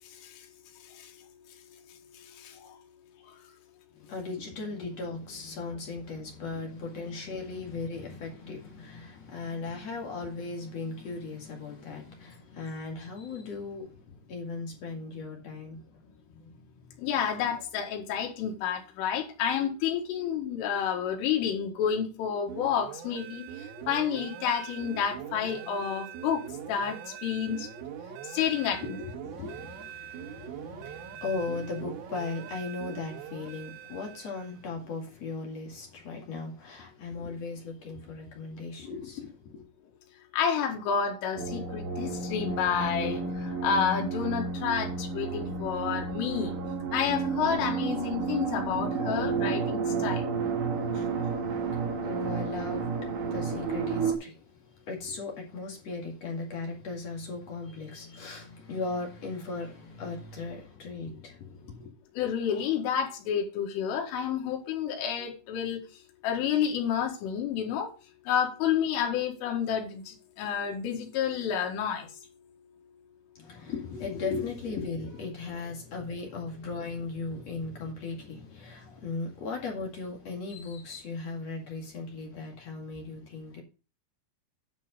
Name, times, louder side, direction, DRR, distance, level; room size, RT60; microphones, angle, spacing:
voice 1, 2.4-2.7 17.0-23.5 23.9-27.7 28.3-28.8 40.3-46.5 46.9-50.2 62.2-65.8 66.2-67.9 68.3-72.1, left 8 dB, 90° left, 4.3 m, -30 dB
voice 2, 3.9-17.0 28.5-39.6 50.9-51.1 51.7-54.4 54.8-61.9 73.3-83.6, left 3 dB, 50° left, 2.3 m, -37 dB
sound 1, 22.5-34.6, right 9 dB, 85° right, 3.7 m, -42 dB
sound 2, 41.3-54.1, right 4 dB, 50° right, 2.9 m, -31 dB
10.5 x 5.7 x 5.1 m
omnidirectional pair, 5.6 m